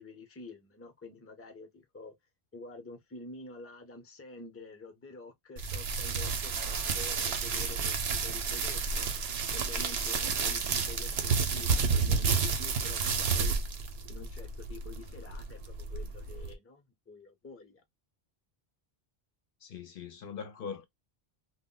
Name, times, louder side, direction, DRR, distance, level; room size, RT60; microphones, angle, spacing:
voice 1, 0.0-2.1 2.5-9.1 9.5-13.8 14.1-17.8, left 3 dB, 15° left, 0.5 m, -48 dB
sound 1, 5.6-16.5, right 5 dB, 80° right, 0.9 m, -31 dB
voice 2, 19.6-20.9, left 6 dB, 65° left, 0.7 m, -41 dB
2.2 x 2.1 x 3.7 m
omnidirectional pair, 1.0 m